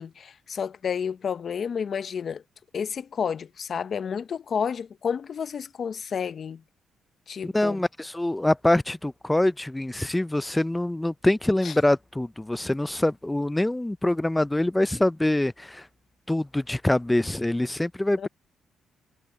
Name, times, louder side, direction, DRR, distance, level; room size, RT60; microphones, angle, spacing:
voice 1, 0.0-2.4 2.7-6.6 7.3-7.8 11.6-11.7 18.2-18.3, left 7 dB, 50° left, 0.9 m, -30 dB
voice 2, 7.4-15.8 16.3-18.3, left 1 dB, 10° left, 0.5 m, -24 dB
cardioid pair, 90°, 0 cm